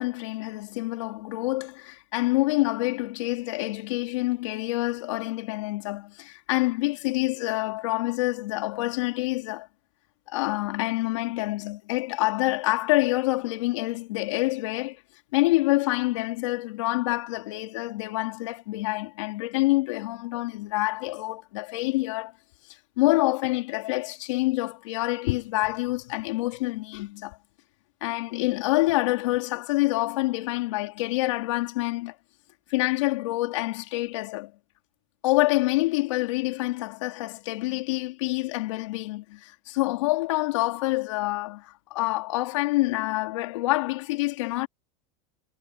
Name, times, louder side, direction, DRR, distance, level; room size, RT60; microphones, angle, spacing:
voice 1, 0.0-9.7 10.3-15.0 15.3-22.3 23.0-27.4 28.0-32.2 32.7-34.5 35.2-44.7, left 20 dB, 85° left, 4.3 m, -27 dB
supercardioid pair, 155°, 15 cm